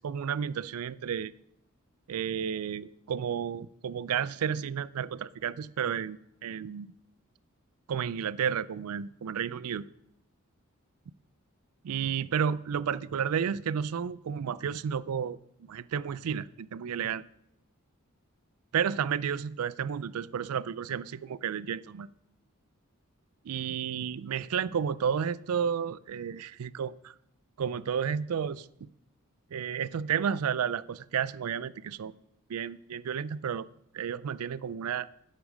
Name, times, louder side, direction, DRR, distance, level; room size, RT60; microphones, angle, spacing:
voice 1, 0.0-1.3 2.1-6.9 7.9-9.9 11.8-15.4 15.7-17.2 18.7-22.1 23.4-27.1 27.6-28.7 29.5-32.1 32.5-33.7 33.9-35.1, right 7 dB, 90° right, 20 dB, 0.4 m, -32 dB
10.0 x 8.1 x 5.0 m, 0.76 s
head